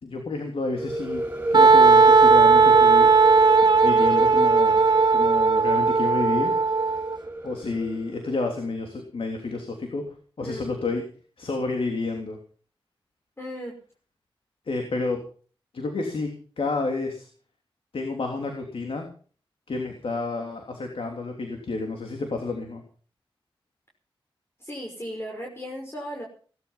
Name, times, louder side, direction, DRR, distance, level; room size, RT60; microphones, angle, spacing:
voice 1, 0.0-1.2 1.5-3.1 3.8-4.8 5.1-6.5 6.8-7.0 7.4-10.0 10.4-11.0 11.4-12.4 14.7-15.2 15.7-16.3 16.6-17.3 17.9-19.0 19.7-22.8, left 3 dB, 75° left, 3 dB, 3.3 m, -30 dB
sound 1, 0.8-8.4, right 1 dB, 15° right, 6.1 m, -31 dB
Wind instrument woodwind instrument, 1.5-7.2, right 4 dB, 50° right, 1.4 m, -17 dB
voice 2, 13.4-13.8 24.6-26.3, equal, 25° left, 0 dB, 5.5 m, -36 dB
18.0 x 12.5 x 5.7 m, 0.42 s
cardioid pair, 55°, 9 cm